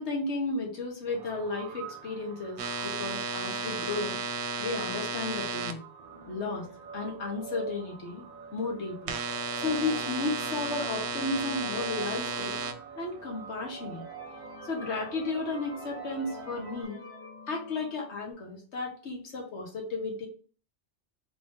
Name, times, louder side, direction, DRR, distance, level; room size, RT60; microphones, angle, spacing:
voice 1, 0.0-4.2 4.6-5.8 6.3-6.7 6.9-8.2 8.5-9.2 9.5-12.5 13.0-14.0 14.6-17.0 17.5-20.3, left 3 dB, 80° left, 0 dB, 1.4 m, -33 dB
sound 1, 1.1-16.8, right 6 dB, 55° right, 0.5 m, -45 dB
sound 2, 2.6-5.7 9.1-12.7, right 4 dB, 80° right, 0.8 m, -33 dB
sound 3, 11.1-12.8 13.3-13.4 13.8-18.3, left 2 dB, 60° left, 1.6 m, -49 dB
3.4 x 2.6 x 3.5 m, 0.40 s
omnidirectional pair, 1.1 m